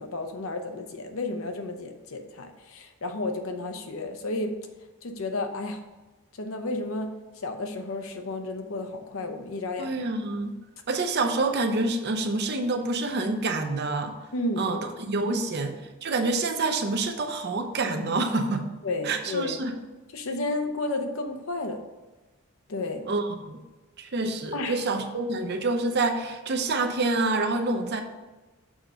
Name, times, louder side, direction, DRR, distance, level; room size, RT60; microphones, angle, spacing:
voice 1, 0.0-4.6 5.0-5.8 6.3-9.9 14.3-14.8 15.2-15.4 18.8-19.6 20.1-21.8 22.7-23.0 24.5-24.8, left 2 dB, 65° left, 5 dB, 0.8 m, -32 dB
voice 2, 9.8-10.5 10.9-14.1 14.6-14.8 15.1-18.6 19.0-19.7 23.1-23.6 24.0-28.0, right 3 dB, 50° right, 5 dB, 0.7 m, -27 dB
6.3 x 3.9 x 6.1 m, 1.2 s
head